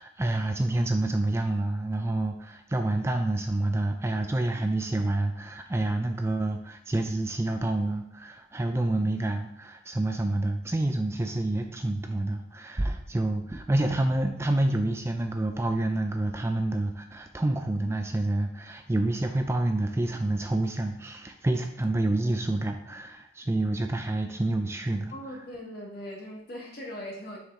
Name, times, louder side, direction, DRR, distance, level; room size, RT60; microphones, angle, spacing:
voice 1, 0.0-25.1, right 2 dB, 15° right, 5 dB, 0.3 m, -28 dB
voice 2, 25.1-27.4, equal, 50° left, -1 dB, 1.6 m, -40 dB
6.4 x 4.6 x 3.7 m, 0.71 s
head